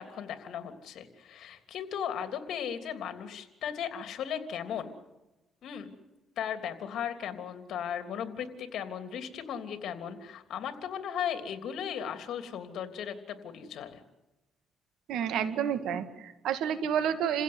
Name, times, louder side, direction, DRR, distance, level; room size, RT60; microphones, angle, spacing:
voice 1, 0.0-4.9 5.6-5.9 6.4-14.0, left 8 dB, 70° left, 8 dB, 3.2 m, -36 dB
voice 2, 15.1-17.4, right 8 dB, 85° right, 10 dB, 2.2 m, -30 dB
29.0 x 16.5 x 9.7 m, 1.0 s
cardioid pair, 90°, 0 cm